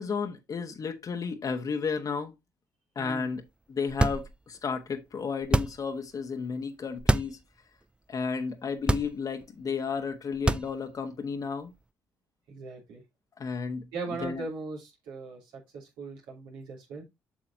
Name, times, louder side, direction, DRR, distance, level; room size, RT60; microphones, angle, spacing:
voice 1, 0.0-2.3 2.9-7.4 8.1-11.7 13.4-13.9 14.2-14.4, left 5 dB, 45° left, 1.2 m, -33 dB
voice 2, 3.0-3.3 12.5-13.0 13.9-15.4 15.7-17.0, right 3 dB, 75° right, 3.0 m, -39 dB
sound 1, 3.9-4.6 5.4-6.0 7.0-7.4 7.8-7.9 8.8-9.5 10.3-11.0, right 2 dB, 10° right, 0.5 m, -27 dB
7.5 x 6.2 x 2.7 m
hypercardioid pair, 50°, 8 cm